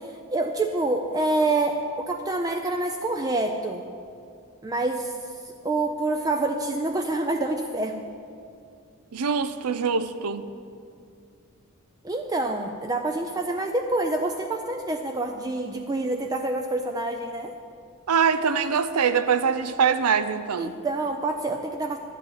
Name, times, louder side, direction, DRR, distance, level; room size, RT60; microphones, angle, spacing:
voice 1, 0.0-3.9 4.6-8.0 12.0-17.5 20.6-22.0, right 2 dB, 15° right, 4 dB, 0.3 m, -27 dB
voice 2, 9.1-10.4 18.1-20.7, right 6 dB, 85° right, 12 dB, 0.5 m, -23 dB
11.0 x 5.5 x 8.6 m, 2.4 s
head